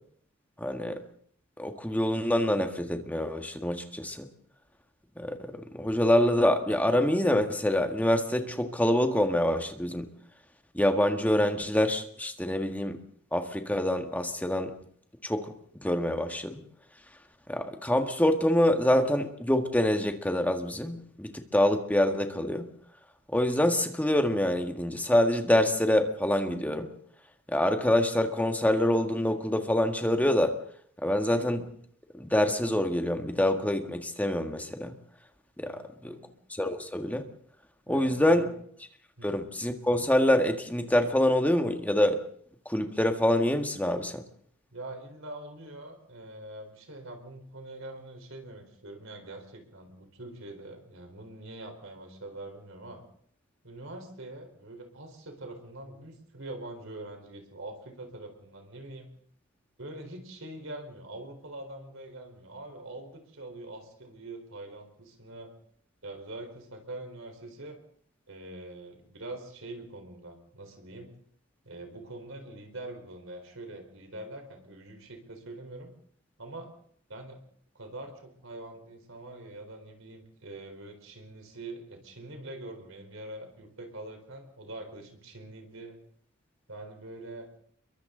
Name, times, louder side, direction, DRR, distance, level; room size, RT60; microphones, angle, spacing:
voice 1, 0.6-1.0 1.6-4.3 5.2-10.1 10.7-13.0 13.3-14.7 15.2-15.5 15.8-16.6 17.5-22.7 23.3-26.9 27.5-30.6 31.0-31.7 32.1-34.9 35.6-35.8 36.0-36.1 36.5-37.2 37.9-38.4 39.2-42.2 42.6-44.2, left 1 dB, 5° left, 5 dB, 1.7 m, -26 dB
voice 2, 35.6-36.4 37.9-38.6 39.2-39.3 44.7-53.0 53.6-59.1 59.8-65.5 66.0-67.8 68.3-71.1 71.6-75.9 76.4-76.7 77.1-77.4 77.7-86.0 86.7-87.5, right 2 dB, 65° right, 4 dB, 4.3 m, -44 dB
29.0 x 23.0 x 3.9 m, 0.62 s
head